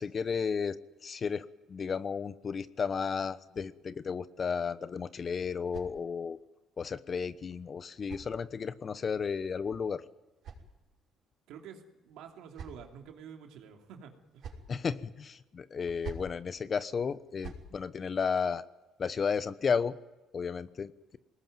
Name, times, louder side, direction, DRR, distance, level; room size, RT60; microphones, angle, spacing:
voice 1, 0.0-6.4 6.8-10.0 14.7-18.6 19.0-20.0 20.3-21.2, left 6 dB, 45° left, 15 dB, 1.0 m, -33 dB
sound 1, 4.8-6.5 7.5-8.9 9.9-11.2 12.1-13.1 14.0-14.8 15.8-16.4 17.1-17.7, right 5 dB, 60° right, 6.0 m, -49 dB
voice 2, 11.5-14.5, right 7 dB, 80° right, 3 dB, 3.0 m, -49 dB
22.5 x 19.5 x 9.4 m, 1.1 s
supercardioid pair, 70°, 0 cm